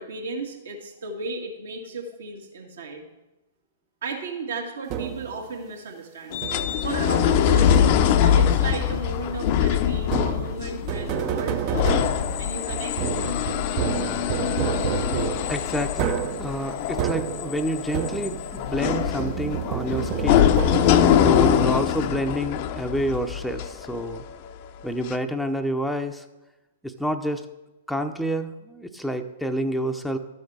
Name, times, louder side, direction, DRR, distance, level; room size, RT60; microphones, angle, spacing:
voice 1, 0.0-3.1 4.0-7.8 8.2-13.6 14.8-15.0, right 3 dB, 65° right, 2 dB, 2.0 m, -35 dB
sound 1, 4.9-5.4 6.4-6.9 7.7-8.3 10.0-18.6 18.8-22.0, right 9 dB, 35° right, 0.6 m, -30 dB
sound 2, 6.3-24.5 25.1-25.2, left 9 dB, 45° left, 0.6 m, -23 dB
voice 2, 15.5-16.1 16.4-20.5 21.2-24.2 24.8-26.2 26.8-27.5 27.9-30.2, equal, ahead, 5 dB, 0.6 m, -28 dB
12.5 x 6.4 x 4.8 m, 1.0 s
figure-of-eight pair, 110°, 0 cm